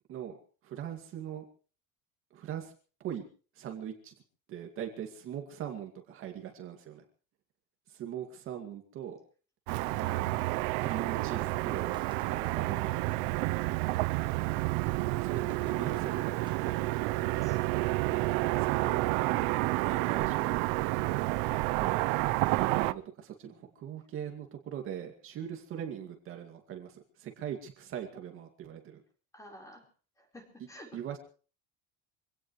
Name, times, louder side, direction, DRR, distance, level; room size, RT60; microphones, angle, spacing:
voice 1, 0.6-1.4 2.3-2.7 3.0-3.2 3.5-4.1 4.5-7.0 7.9-9.2 10.0-10.3 10.8-11.9 12.3-13.0 15.2-17.0 18.0-20.9 21.7-22.1 22.5-29.0 30.9-31.2, right 9 dB, 40° right, 3 dB, 2.4 m, -40 dB
voice 2, 9.7-10.5 13.7-13.8 16.7-16.8 17.0-17.6 19.2-19.5 23.4-23.7 29.3-29.9 30.2-31.2, left 1 dB, 10° left, 2 dB, 4.5 m, -52 dB
Car passing by / Traffic noise roadway noise, 9.7-22.9, right 20 dB, 80° right, 0.8 m, -30 dB
sound 1, 11.7-13.1 13.4-14.1 14.7-17.2, right 4 dB, 15° right, 1.6 m, -53 dB
25.0 x 17.5 x 3.2 m, 0.40 s
cardioid pair, 170°, 32 cm